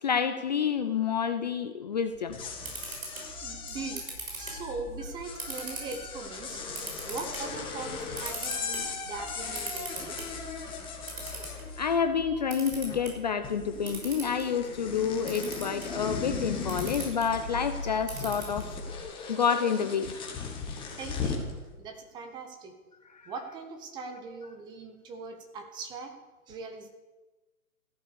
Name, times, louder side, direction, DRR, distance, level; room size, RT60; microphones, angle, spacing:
voice 1, 0.0-2.4 3.2-3.3 11.8-18.7 19.3-20.1 23.2-23.3, left 7 dB, 30° left, 8 dB, 0.6 m, -28 dB
sound 1, 2.1-12.2 12.5-13.2 13.4-21.5, left 5 dB, 10° left, 2.0 m, -38 dB
Camera, 2.3-19.0, right 1 dB, 65° right, 6.4 m, -42 dB
voice 2, 3.4-4.0 4.3-6.6 7.1-10.2 21.0-22.7 23.2-26.1 26.5-26.9, right 4 dB, 10° right, 5 dB, 0.9 m, -40 dB
14.5 x 12.0 x 6.9 m, 1.2 s
hypercardioid pair, 140°, 44 cm